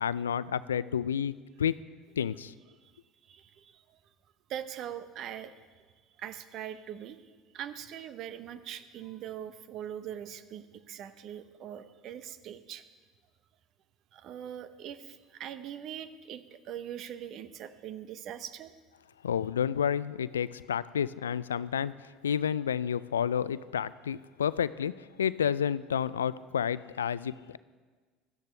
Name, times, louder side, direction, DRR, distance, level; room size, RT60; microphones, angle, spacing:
voice 1, 0.0-1.3 1.6-1.7 2.2-2.5 19.2-21.9 22.2-24.9 25.2-27.6, left 8 dB, 90° left, 18 dB, 0.3 m, -30 dB
voice 2, 3.3-3.8 4.5-5.5 6.2-7.2 7.5-12.8 14.1-18.7, right 10 dB, 55° right, 12 dB, 0.9 m, -42 dB
16.5 x 13.0 x 3.3 m, 1.4 s
hypercardioid pair, 70°, 0 cm